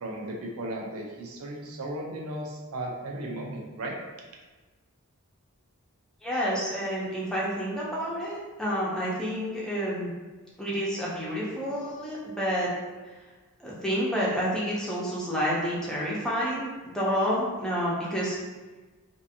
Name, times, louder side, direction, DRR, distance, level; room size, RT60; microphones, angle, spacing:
voice 1, 0.0-4.0, right 1 dB, 70° right, 0 dB, 0.4 m, -35 dB
voice 2, 6.2-10.1 10.6-12.7 13.6-18.4, equal, 5° left, -7 dB, 0.5 m, -29 dB
2.4 x 2.4 x 2.6 m, 1.3 s
head